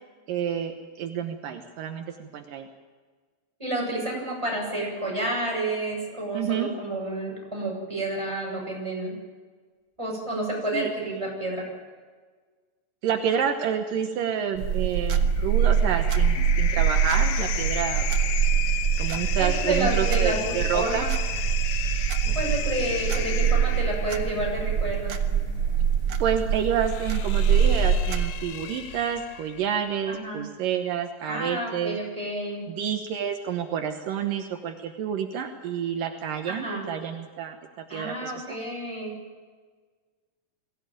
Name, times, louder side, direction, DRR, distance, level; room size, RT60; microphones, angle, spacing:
voice 1, 0.3-2.7 6.3-6.7 10.7-10.9 13.0-18.1 19.0-21.0 26.2-32.0 32.7-37.6 37.9-38.4, right 8 dB, 75° right, 5 dB, 2.7 m, -29 dB
voice 2, 3.6-9.1 10.0-11.6 19.4-21.1 22.3-25.1 30.1-30.4 31.3-32.6 36.5-36.9 37.9-39.1, right 1 dB, 10° right, -2 dB, 7.1 m, -30 dB
sound 1, 14.6-28.2, right 7 dB, 55° right, 1.9 m, -24 dB
sound 2, 15.2-29.8, left 9 dB, 70° left, 1.7 m, -35 dB
22.5 x 16.5 x 9.1 m, 1.5 s
omnidirectional pair, 4.0 m